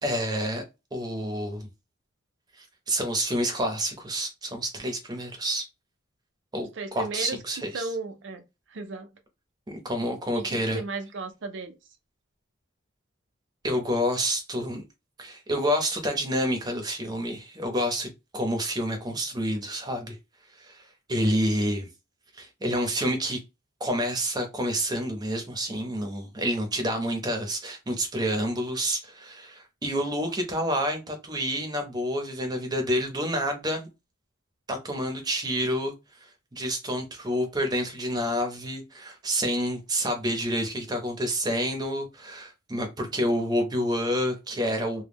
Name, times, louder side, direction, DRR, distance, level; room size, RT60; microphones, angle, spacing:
voice 1, 0.0-0.6 0.9-1.7 2.6-5.6 6.5-7.9 9.7-10.8 13.6-14.8 15.2-20.2 20.6-21.9 22.3-23.4 23.8-33.9 34.7-35.9 36.2-45.0, equal, 20° right, 0.6 m, -28 dB
voice 2, 6.8-7.4 7.7-8.4 8.7-9.1 10.3-11.7, right 3 dB, 65° right, 0.5 m, -35 dB
2.1 x 2.0 x 3.3 m
head